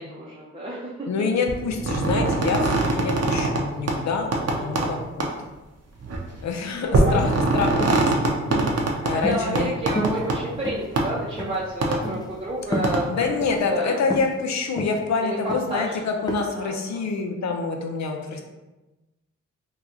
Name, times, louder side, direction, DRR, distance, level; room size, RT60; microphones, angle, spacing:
voice 1, 0.0-1.1 4.5-4.7 6.8-7.9 9.1-14.0 15.2-16.0 16.5-16.7, right 1 dB, 15° right, -7 dB, 0.7 m, -30 dB
voice 2, 1.1-5.3 6.4-8.1 9.0-9.8 13.1-18.4, left 4 dB, 60° left, 3 dB, 0.6 m, -26 dB
sound 1, 1.5-3.6 3.9-4.0 4.3-4.9 5.2-5.3 6.0-6.2 6.9-9.1 9.6-10.4 11.0-11.1 11.8-12.0 12.8-13.0, right 2 dB, 55° right, 0.7 m, -22 dB
sound 2, 7.1-7.4 7.8-8.0 8.5-8.8 9.2-9.7 10.0-10.2 10.6-11.1 11.4-11.6 12.0-12.3 12.7-13.0 13.4-13.6 14.1-14.3 14.8-15.0 15.5-15.8 16.3-16.4, equal, 15° left, 0.4 m, -29 dB
2.9 x 2.4 x 3.7 m, 1.1 s
cardioid pair, 65°, 31 cm